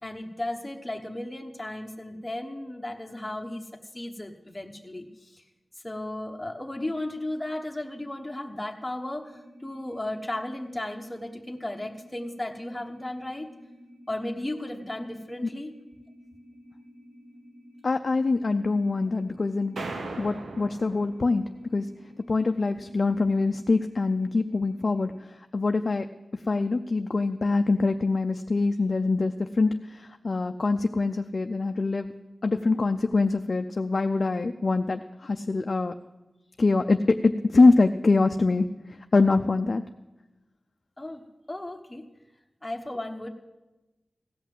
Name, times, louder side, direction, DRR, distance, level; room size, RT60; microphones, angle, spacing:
voice 1, 0.0-3.7 3.9-5.4 5.8-13.5 14.1-15.7 41.0-41.2 41.5-42.1 42.6-43.3, left 1 dB, 15° left, 2 dB, 1.1 m, -35 dB
sound 1, 9.2-25.1, equal, 60° right, 2.4 m, -51 dB
voice 2, 17.8-19.8 20.2-21.4 21.7-21.9 22.3-26.1 26.5-32.1 32.4-35.9 36.6-39.8, left 3 dB, 50° left, 6 dB, 0.4 m, -24 dB
sound 2, 19.8-21.7, right 3 dB, 90° right, 0.9 m, -38 dB
16.0 x 5.8 x 7.6 m, 1.1 s
wide cardioid pair, 60°, 0 cm